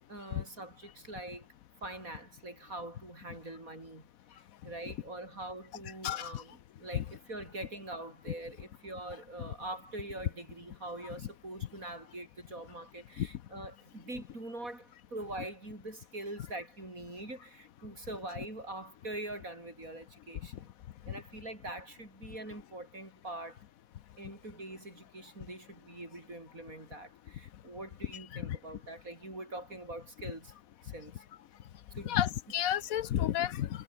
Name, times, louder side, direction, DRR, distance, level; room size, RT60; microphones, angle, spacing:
voice 1, 0.1-1.5 1.8-4.1 4.3-20.7 21.0-23.6 24.2-30.5 30.8-31.2 31.9-32.2, right 2 dB, 75° right, 7.8 m, -44 dB
voice 2, 6.0-6.4 6.9-7.0 13.2-13.3 28.4-28.6 32.1-33.7, left 11 dB, 80° left, 1.2 m, -31 dB
omnidirectional pair, 1.5 m